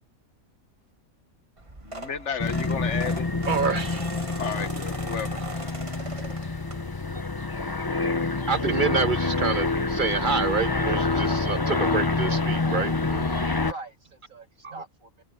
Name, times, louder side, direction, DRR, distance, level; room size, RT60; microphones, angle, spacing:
sound 1, 1.6-7.2 7.7-7.9 9.2-9.3 9.5-9.6 9.9-10.1, right 2 dB, 25° right, 1.6 m, -40 dB
voice 1, 1.8-3.3 4.4-5.4, left 6 dB, 60° left, 1.6 m, -32 dB
sound 2, 2.4-13.7, left 3 dB, 20° left, 0.7 m, -27 dB
voice 2, 3.5-4.1 8.5-13.4 14.6-14.7, right 5 dB, 55° right, 0.6 m, -27 dB
voice 3, 13.4-15.2, right 2 dB, 85° right, 7.4 m, -43 dB
omnidirectional pair, 1.4 m